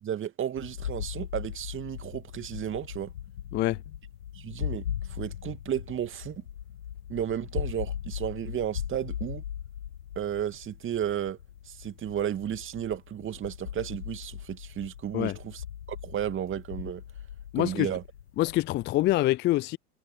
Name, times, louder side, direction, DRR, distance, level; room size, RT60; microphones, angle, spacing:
voice 1, 0.0-3.1 4.3-6.4 7.1-9.4 10.2-11.4 11.7-17.0 17.6-18.0, right 10 dB, 25° right, 2.5 m, -33 dB
sound 1, 0.6-19.2, left 10 dB, 70° left, 1.9 m, -39 dB
voice 2, 17.5-17.9 18.4-19.8, left 16 dB, 25° left, 0.6 m, -25 dB
figure-of-eight pair, 90°, 47 cm